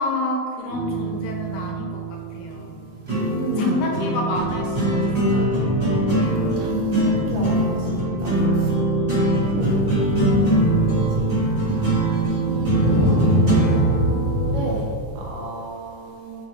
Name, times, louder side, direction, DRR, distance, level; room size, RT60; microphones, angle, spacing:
voice 1, 0.0-2.8 3.6-5.7 9.2-9.8, left 2 dB, 80° left, -1 dB, 2.9 m, -29 dB
sound 1, 0.7-14.7, right 1 dB, 30° right, 0.8 m, -22 dB
voice 2, 3.2-3.8 6.2-8.7 9.4-10.8 11.2-11.3 12.4-16.4, right 2 dB, 75° right, -2 dB, 2.6 m, -32 dB
sound 2, 4.3-15.3, left 1 dB, 65° left, 1.0 m, -26 dB
7.3 x 6.9 x 3.2 m, 2.3 s
omnidirectional pair, 4.0 m